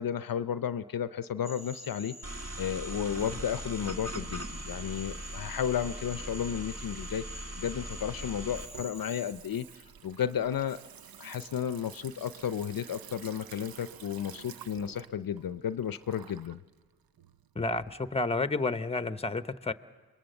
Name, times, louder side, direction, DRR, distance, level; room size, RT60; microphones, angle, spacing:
voice 1, 0.0-10.8 11.2-16.6, left 9 dB, 60° left, 14 dB, 0.6 m, -33 dB
sound 1, 1.4-9.3, left 1 dB, ahead, 2.7 m, -46 dB
sound 2, 2.2-8.7, right 1 dB, 40° right, 1.9 m, -40 dB
Water tap faucet / Sink (filling or washing), 6.7-18.4, right 9 dB, 65° right, 0.7 m, -51 dB
voice 2, 17.5-19.7, left 3 dB, 15° left, 13 dB, 0.9 m, -30 dB
27.0 x 21.0 x 7.9 m, 1.4 s
cardioid pair, 50°, 39 cm